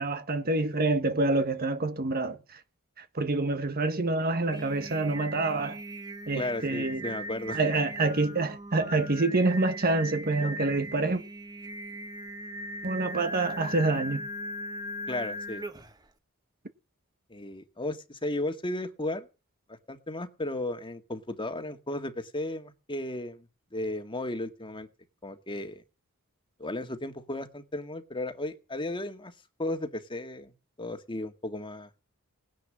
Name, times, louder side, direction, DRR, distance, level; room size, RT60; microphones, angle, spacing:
voice 1, 0.0-2.6 3.0-5.8 6.3-7.1 7.5-11.2 12.8-14.2, right 2 dB, 45° right, 1.4 m, -27 dB
Singing, 4.3-16.0, equal, 20° right, 1.4 m, -39 dB
voice 2, 6.3-7.6 15.1-15.6 17.3-19.3 19.7-23.5 23.7-24.9 25.2-25.8 26.6-29.3 29.6-31.9, left 1 dB, 20° left, 1.9 m, -35 dB
19.0 x 10.5 x 7.5 m
head